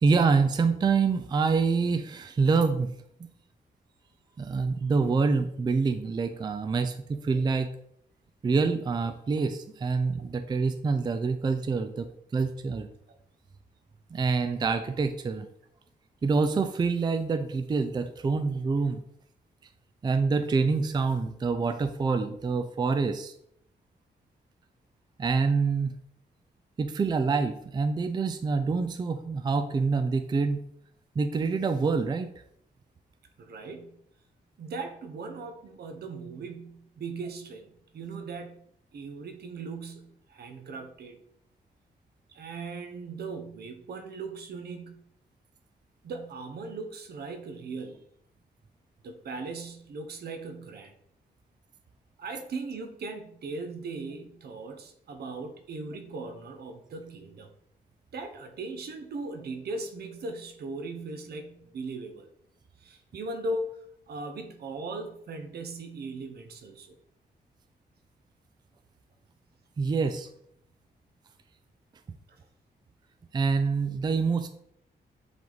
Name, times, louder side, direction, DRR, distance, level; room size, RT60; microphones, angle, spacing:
voice 1, 0.0-2.9 4.4-7.7 8.4-12.9 14.1-15.5 16.2-19.0 20.0-23.3 25.2-25.9 26.8-30.6 31.2-32.3 69.8-70.3 73.3-74.5, right 4 dB, 25° right, 9 dB, 0.4 m, -26 dB
voice 2, 33.4-34.0 34.6-38.6 38.9-41.2 42.3-45.0 46.0-48.0 49.0-50.9 52.2-57.5 58.1-62.3 62.8-63.7 64.1-67.0 72.3-72.4, right 3 dB, 70° right, 7 dB, 0.9 m, -38 dB
7.7 x 3.5 x 3.9 m, 0.71 s
wide cardioid pair, 155°, 17 cm